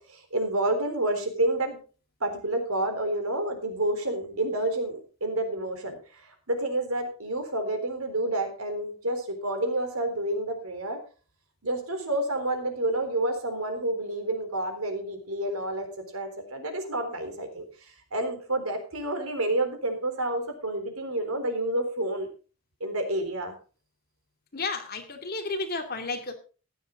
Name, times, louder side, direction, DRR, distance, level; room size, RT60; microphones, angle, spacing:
voice 1, 0.0-1.8 2.2-11.0 11.6-17.7 18.1-22.3 22.8-23.5, right 1 dB, 85° right, 6 dB, 3.8 m, -29 dB
voice 2, 24.5-26.4, left 3 dB, 45° left, 5 dB, 2.5 m, -32 dB
15.0 x 10.5 x 3.9 m, 0.36 s
head